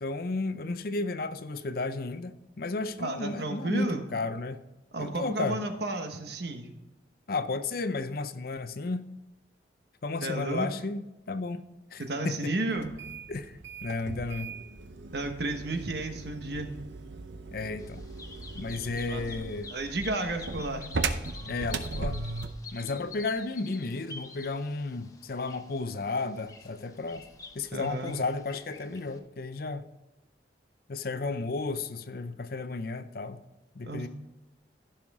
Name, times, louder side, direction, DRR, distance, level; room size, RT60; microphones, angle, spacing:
voice 1, 0.0-4.6 5.0-5.6 7.3-9.1 10.0-11.0 11.3-11.6 11.9-12.5 13.3-13.5 13.8-14.6 17.5-18.0 18.5-19.7 21.5-22.2 22.7-27.2 27.5-29.9 30.9-33.4 33.7-34.1, left 3 dB, 55° left, 0.5 m, -33 dB
voice 2, 3.0-4.0 4.9-6.7 10.2-10.7 12.0-12.9 15.1-16.7 19.1-19.2 19.7-20.9 27.7-28.1 33.9-34.1, right 2 dB, 60° right, 1.2 m, -32 dB
sound 1, 12.8-22.7, right 3 dB, 80° right, 0.7 m, -38 dB
Bird vocalization bird call bird song, 17.8-29.2, left 2 dB, 20° left, 0.8 m, -47 dB
15.5 x 5.7 x 3.6 m
head